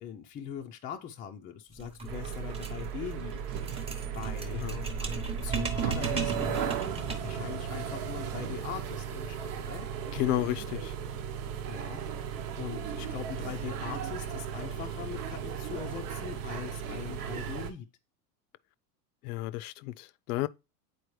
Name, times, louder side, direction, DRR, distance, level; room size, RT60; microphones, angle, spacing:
voice 1, 0.0-3.4 4.2-5.1 5.4-6.8 7.2-9.9 11.7-12.0 12.6-17.9, left 8 dB, 20° left, 0.4 m, -41 dB
sound 1, 1.7-7.4, right 3 dB, 15° right, 0.8 m, -36 dB
sound 2, 2.1-17.7, right 8 dB, 75° right, 1.0 m, -36 dB
voice 2, 4.5-4.9 10.1-10.9 19.2-20.5, left 15 dB, 75° left, 0.5 m, -32 dB
8.3 x 4.3 x 3.1 m
supercardioid pair, 135°, 46 cm